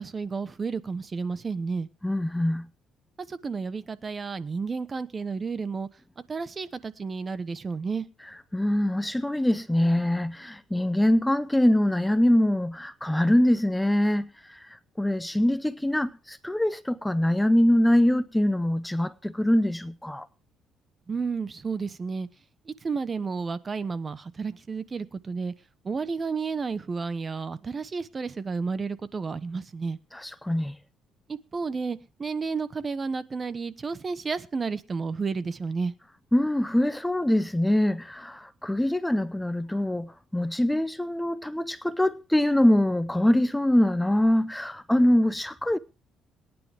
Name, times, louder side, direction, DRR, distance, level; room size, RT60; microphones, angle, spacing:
voice 1, 0.0-1.9 3.3-5.9 6.3-8.1 21.1-22.3 22.7-25.5 25.8-30.0 31.3-35.9, right 4 dB, 35° right, 1.0 m, -31 dB
voice 2, 2.0-2.7 8.2-20.3 30.1-30.8 36.3-45.8, left 1 dB, 5° left, 0.6 m, -24 dB
21.5 x 9.9 x 3.5 m
cardioid pair, 95°, 0 cm